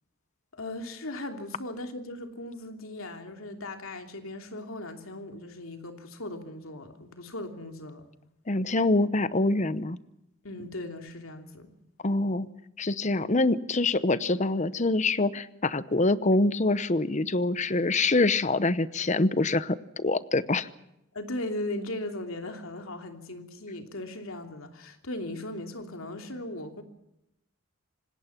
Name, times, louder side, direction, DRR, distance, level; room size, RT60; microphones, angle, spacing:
voice 1, 0.5-8.0 10.4-11.7 21.1-26.8, left 1 dB, 75° left, 5 dB, 3.0 m, -38 dB
voice 2, 8.5-10.0 12.0-12.5 12.8-20.7, left 2 dB, 35° left, 15 dB, 0.8 m, -25 dB
26.0 x 19.0 x 5.9 m, 0.85 s
head